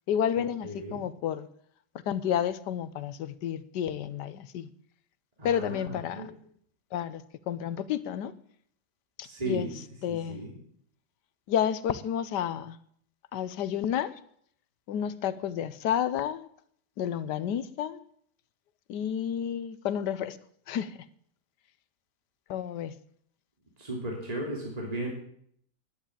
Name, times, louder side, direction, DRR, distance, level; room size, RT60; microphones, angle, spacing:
voice 1, 0.1-1.5 2.1-4.7 5.4-6.3 6.9-8.3 9.2-9.7 10.0-10.4 11.5-12.8 13.3-14.2 14.9-16.5 17.0-18.0 18.9-20.4 20.7-21.0 22.5-22.9, left 9 dB, 90° left, 1.4 m, -31 dB
voice 2, 0.6-1.0 5.4-6.3 9.2-9.8 10.1-10.5 23.8-25.1, right 1 dB, 20° right, 3.2 m, -35 dB
11.5 x 9.8 x 8.7 m
omnidirectional pair, 1.8 m